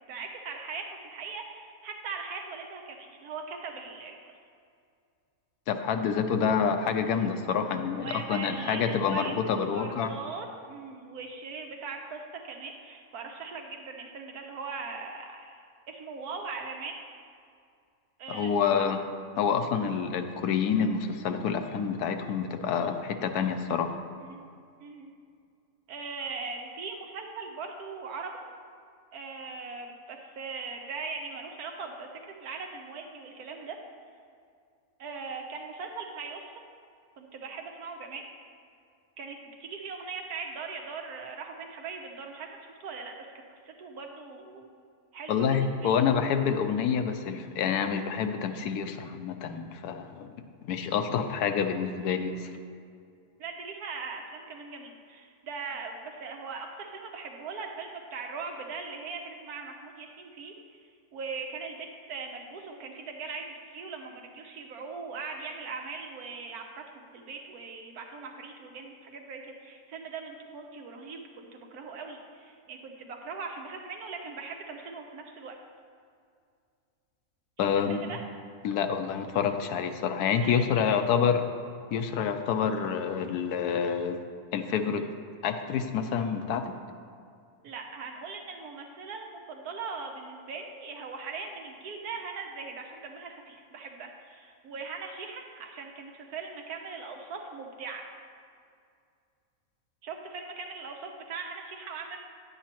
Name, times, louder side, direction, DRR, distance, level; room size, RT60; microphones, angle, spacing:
voice 1, 0.0-4.2 7.9-15.6 15.9-17.0 18.2-18.9 24.2-24.5 24.8-25.1 25.9-28.3 29.1-32.1 32.4-33.8 35.0-36.6 37.2-38.2 39.2-44.7 45.1-46.0 53.4-66.7 66.9-75.6 77.6-78.2 80.4-81.4 87.6-98.0 100.0-102.2, right 4 dB, 80° right, 2 dB, 1.4 m, -40 dB
voice 2, 5.7-10.1 18.3-19.0 19.4-24.0 45.3-50.3 50.6-52.5 77.6-78.0 78.6-81.4 81.9-84.2 84.5-85.0 85.4-86.7, left 7 dB, 85° left, 7 dB, 1.2 m, -27 dB
9.9 x 8.3 x 2.9 m, 2.3 s
omnidirectional pair, 1.6 m